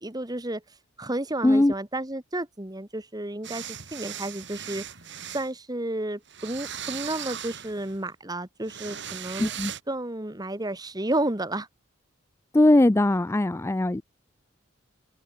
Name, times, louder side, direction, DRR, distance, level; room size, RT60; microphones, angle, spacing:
voice 1, 0.0-0.6 1.0-4.8 5.3-9.5 9.9-11.7, right 1 dB, 20° right, 1.9 m, -31 dB
voice 2, 1.4-1.7 9.4-9.7 12.5-14.0, left 1 dB, 15° left, 0.4 m, -20 dB
sound 1, 3.4-5.5 6.3-8.0 8.6-9.8, right 9 dB, 60° right, 4.3 m, -38 dB
head